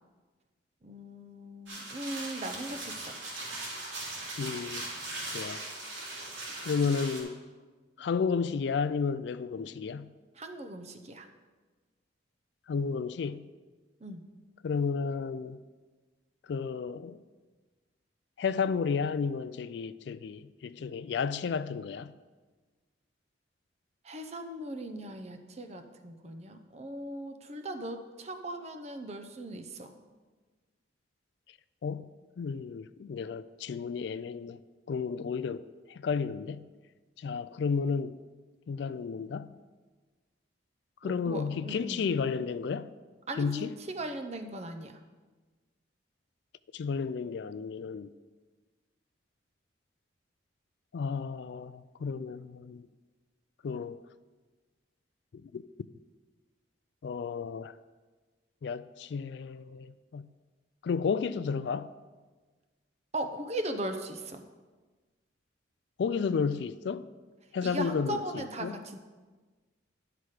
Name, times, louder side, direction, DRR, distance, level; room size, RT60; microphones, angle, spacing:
voice 1, 0.8-3.2 10.4-11.3 14.0-14.2 24.0-29.9 41.0-42.0 43.3-44.9 63.1-64.4 67.6-69.0, right 1 dB, 35° right, 0.7 m, -38 dB
sound 1, 1.7-7.2, right 2 dB, 80° right, 2.9 m, -39 dB
voice 2, 4.4-4.8 5.3-5.6 6.6-7.4 8.0-10.1 12.7-13.5 14.6-15.6 16.5-17.2 18.4-22.1 31.8-32.1 32.4-34.6 34.9-36.7 37.2-38.2 38.7-39.5 41.0-42.9 43.4-43.7 46.7-48.1 50.9-52.9 53.6-54.0 55.3-55.6 57.0-57.7 58.6-60.3 60.8-61.9 66.0-67.1 67.5-68.8, left 5 dB, 65° left, 0.3 m, -32 dB
11.0 x 5.9 x 4.9 m
head